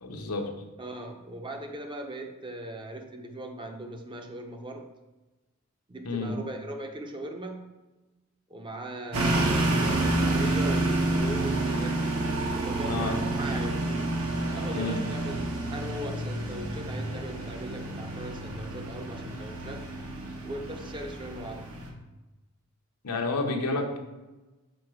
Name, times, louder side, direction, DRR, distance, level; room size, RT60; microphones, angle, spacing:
voice 1, 0.0-0.5 6.0-6.4 12.9-13.2 14.7-15.0 23.0-24.0, left 3 dB, 90° left, 3 dB, 0.9 m, -30 dB
voice 2, 0.8-4.9 5.9-7.7 8.5-12.2 12.5-13.9 14.5-19.9 20.4-21.7, right 1 dB, 20° right, 4 dB, 0.5 m, -39 dB
sound 1, 9.1-21.9, right 2 dB, 70° right, 0.9 m, -29 dB
5.2 x 3.9 x 4.8 m, 1.1 s
head